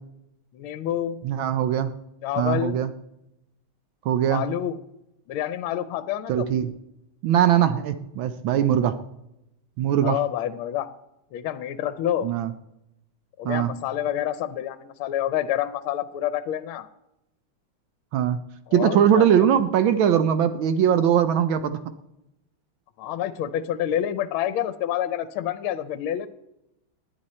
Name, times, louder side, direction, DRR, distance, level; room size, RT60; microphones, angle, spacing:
voice 1, 0.5-1.2 2.2-2.8 4.3-4.8 5.3-6.5 10.0-10.9 11.3-12.3 13.4-16.9 18.7-19.5 23.0-26.3, left 11 dB, 75° left, 12 dB, 1.5 m, -28 dB
voice 2, 1.2-1.9 2.4-2.9 4.0-4.4 6.3-6.7 7.2-9.0 9.8-10.2 12.2-12.5 13.4-13.7 18.1-18.4 18.7-21.8, right 9 dB, 75° right, 11 dB, 1.4 m, -21 dB
19.5 x 9.9 x 4.3 m, 0.86 s
omnidirectional pair, 2.4 m